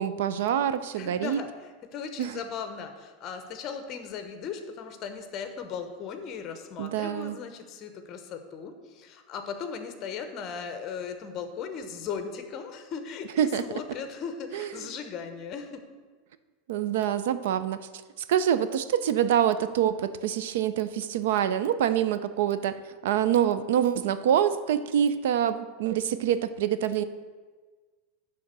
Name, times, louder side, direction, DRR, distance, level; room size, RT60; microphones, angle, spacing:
voice 1, 0.0-1.4 2.2-2.4 6.8-7.4 13.4-13.6 14.5-14.7 16.7-17.8 18.3-27.0, right 9 dB, 75° right, 13 dB, 0.5 m, -26 dB
voice 2, 1.0-15.8, left 6 dB, 30° left, 7 dB, 0.9 m, -37 dB
10.5 x 3.7 x 6.6 m, 1.4 s
supercardioid pair, 165°, 0 cm